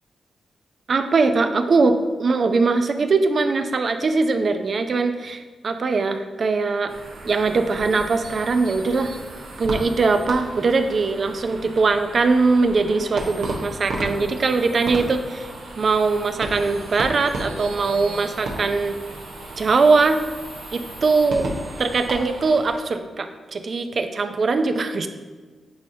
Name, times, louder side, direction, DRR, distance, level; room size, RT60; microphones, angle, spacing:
voice 1, 0.9-6.9 7.2-9.1 9.6-15.5 15.8-19.0 19.6-20.2 20.7-21.5 21.8-25.1, right 4 dB, 60° right, 8 dB, 0.5 m, -21 dB
sound 1, 6.9-22.9, right 2 dB, 85° right, 1.0 m, -34 dB
9.5 x 4.1 x 2.8 m, 1.4 s
supercardioid pair, 50°, 0 cm